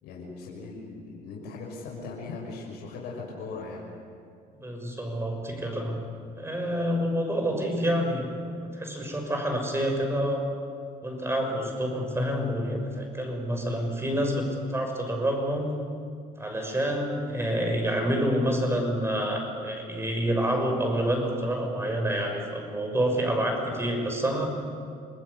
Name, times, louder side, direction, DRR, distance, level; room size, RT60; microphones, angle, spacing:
voice 1, 0.0-3.9, left 3 dB, 90° left, -3 dB, 6.6 m, -39 dB
voice 2, 4.6-6.0 6.4-10.5 11.0-15.7 16.4-24.5, equal, 15° right, 3 dB, 6.5 m, -28 dB
28.0 x 20.5 x 8.4 m, 2.3 s
cardioid pair, 110°, 17 cm